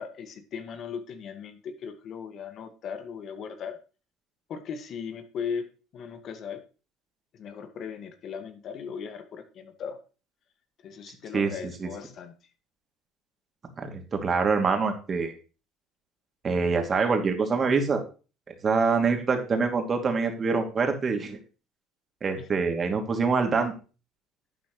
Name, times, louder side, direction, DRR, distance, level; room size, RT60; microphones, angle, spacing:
voice 1, 0.0-3.8 4.5-6.6 7.3-10.0 10.8-12.3 22.4-22.6, left 6 dB, 55° left, 8 dB, 1.8 m, -38 dB
voice 2, 13.8-15.3 16.4-18.0 18.6-21.4 22.2-23.7, right 4 dB, 35° right, 4 dB, 2.7 m, -25 dB
11.0 x 9.1 x 3.2 m, 0.34 s
hypercardioid pair, 75°, 0 cm